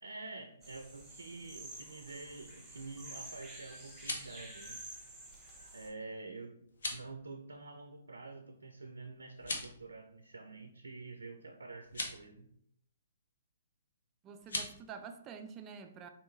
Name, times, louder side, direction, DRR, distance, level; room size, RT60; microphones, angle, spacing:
voice 1, 0.0-4.8 5.7-12.5, right 3 dB, 80° right, 0.5 m, -48 dB
sound 1, 0.6-5.9, right 1 dB, 5° right, 1.8 m, -50 dB
sound 2, 3.8-4.4 6.7-7.1 9.3-9.8 11.8-12.2 14.4-14.7, left 2 dB, 70° left, 1.0 m, -39 dB
voice 2, 14.2-16.1, right 6 dB, 25° right, 0.4 m, -48 dB
4.2 x 3.2 x 3.1 m
figure-of-eight pair, 130°, 0 cm